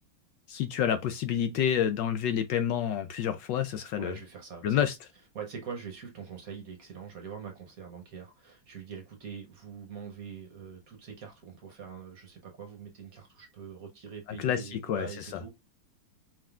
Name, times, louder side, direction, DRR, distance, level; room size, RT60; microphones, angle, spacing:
voice 1, 0.5-4.1 4.6-4.9 14.4-15.1, left 9 dB, 75° left, 1.1 m, -28 dB
voice 2, 3.9-4.8 5.3-15.5, right 6 dB, 55° right, 1.1 m, -43 dB
4.6 x 3.6 x 2.3 m
omnidirectional pair, 2.3 m